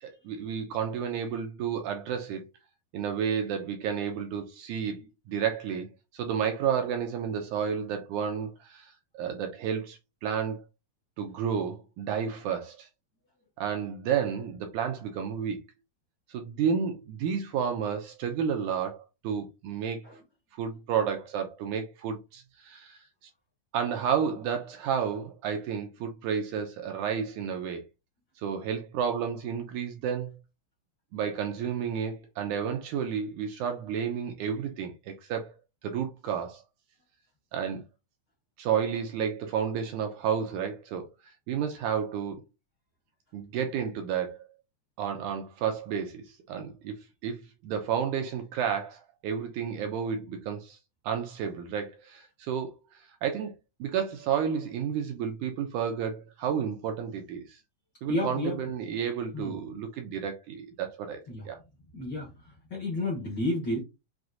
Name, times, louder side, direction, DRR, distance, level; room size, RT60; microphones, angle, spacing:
voice 1, 0.0-2.5 2.9-5.0 5.3-5.9 6.1-10.6 11.2-12.9 13.6-15.6 16.3-20.0 20.5-23.0 23.7-27.8 28.4-30.3 31.1-35.5 35.8-36.6 37.5-37.8 38.6-42.4 43.3-44.5 45.0-47.0 47.2-50.8 51.0-53.6 53.8-57.6 58.0-61.6, right 7 dB, 80° right, 1.9 m, -31 dB
voice 2, 58.1-58.6 59.3-59.5 61.3-61.4 61.9-62.3 62.7-63.8, left 1 dB, 55° left, 1.3 m, -30 dB
6.1 x 2.6 x 2.5 m
omnidirectional pair, 3.9 m